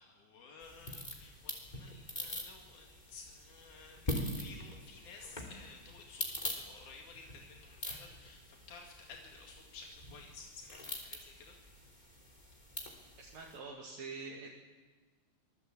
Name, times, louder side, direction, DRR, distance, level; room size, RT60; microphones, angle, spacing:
voice 1, 0.0-11.5, left 4 dB, 85° left, 2 dB, 3.6 m, -54 dB
sound 1, 0.6-13.6, left 1 dB, 15° left, 3.4 m, -44 dB
voice 2, 13.2-14.5, right 4 dB, 65° right, -2 dB, 3.6 m, -45 dB
25.5 x 19.0 x 8.6 m, 1.3 s
omnidirectional pair, 3.4 m